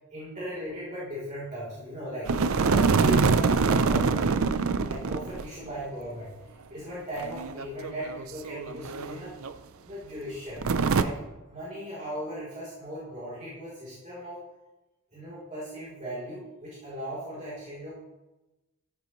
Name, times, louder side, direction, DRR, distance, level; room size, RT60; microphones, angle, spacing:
voice 1, 0.1-2.3 2.6-4.4 4.8-9.3 9.8-10.7 10.9-11.2 11.5-14.4 15.1-17.9, equal, 35° right, -9 dB, 3.3 m, -38 dB
sound 1, 2.3-5.5 5.8-5.9 7.2-9.1 9.4-9.5 10.6-11.0, right 4 dB, 70° right, 0.5 m, -24 dB
13.5 x 9.6 x 3.1 m, 1.0 s
head